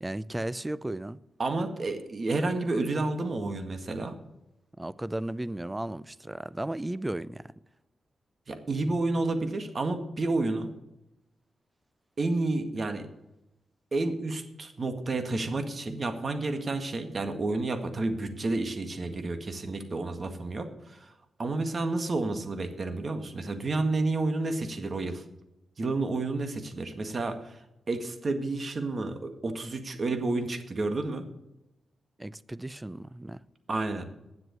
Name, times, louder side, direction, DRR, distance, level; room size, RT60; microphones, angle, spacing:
voice 1, 0.0-1.2 4.8-7.5 32.2-33.4, right 1 dB, 15° right, 0.5 m, -35 dB
voice 2, 1.4-4.2 8.5-10.7 12.2-13.1 13.9-21.1 21.4-25.2 25.8-27.6 27.9-31.2 33.7-34.0, right 2 dB, 50° right, 1.8 m, -30 dB
9.4 x 7.9 x 9.4 m
cardioid pair, 60°, 0 cm